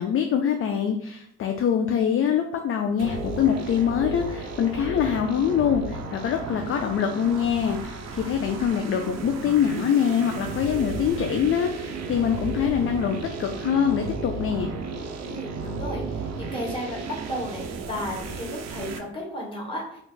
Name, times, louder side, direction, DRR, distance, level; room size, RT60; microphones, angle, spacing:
voice 1, 0.0-14.7, left 8 dB, 45° left, 4 dB, 0.4 m, -24 dB
sound 1, 3.0-19.0, right 4 dB, 60° right, 0.5 m, -34 dB
voice 2, 15.2-20.0, equal, 15° left, -3 dB, 1.3 m, -34 dB
2.5 x 2.4 x 3.7 m, 0.68 s
cardioid pair, 90°, 30 cm